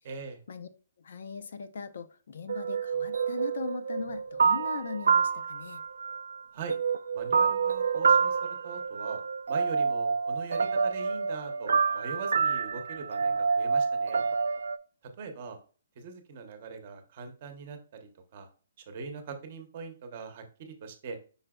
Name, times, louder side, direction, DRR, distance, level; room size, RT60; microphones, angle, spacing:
voice 1, 0.1-0.4 6.5-6.7 7.1-9.2 9.5-14.2 15.2-15.6 16.0-18.5 18.8-21.2, right 5 dB, 35° right, 6 dB, 0.9 m, -41 dB
voice 2, 1.0-5.8, left 5 dB, 60° left, 10 dB, 0.6 m, -39 dB
sound 1, 2.5-6.4 6.7-14.8, right 5 dB, 85° right, 0.4 m, -28 dB
5.5 x 3.9 x 2.3 m, 0.38 s
hypercardioid pair, 175°, 0 cm